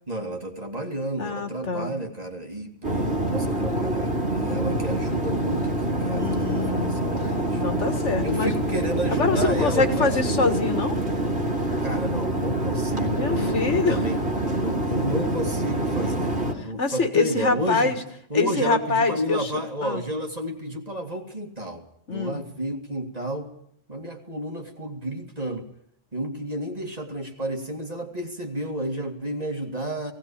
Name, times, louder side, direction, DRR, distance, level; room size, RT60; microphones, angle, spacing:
voice 1, 0.1-7.6 8.2-10.2 11.8-14.2 14.6-16.4 16.6-18.0 18.3-21.8 22.1-23.5 23.9-25.7 26.1-30.1, right 1 dB, 30° right, 3 dB, 2.4 m, -31 dB
voice 2, 1.2-1.9 6.1-8.5 9.1-11.0 13.1-14.0 16.8-18.0 18.3-19.5 19.8-20.0 22.1-22.4, left 4 dB, 65° left, 7 dB, 2.0 m, -25 dB
sound 1, 2.8-16.5, right 1 dB, 55° right, 3.0 m, -26 dB
18.0 x 17.0 x 8.7 m, 0.68 s
omnidirectional pair, 1.3 m